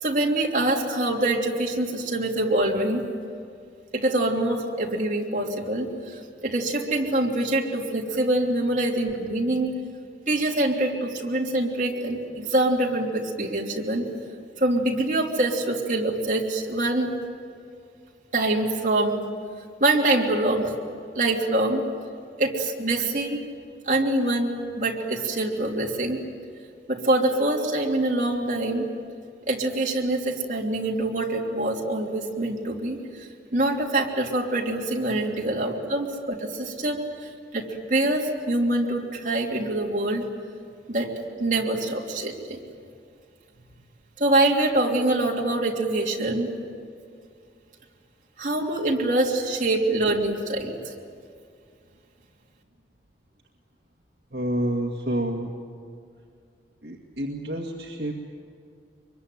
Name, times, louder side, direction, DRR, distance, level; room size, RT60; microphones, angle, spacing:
voice 1, 0.0-3.0 3.9-9.7 10.3-14.1 14.6-17.1 18.3-19.2 19.8-20.7 21.1-21.8 22.4-23.4 23.9-26.2 26.9-28.8 29.5-37.0 37.5-40.2 40.9-41.1 41.4-42.6 44.2-46.5 48.4-50.7, right 2 dB, 45° right, -1 dB, 3.1 m, -25 dB
voice 2, 54.3-55.5 56.8-58.1, right 1 dB, 65° right, 0 dB, 2.0 m, -28 dB
24.5 x 23.0 x 9.4 m, 2.3 s
head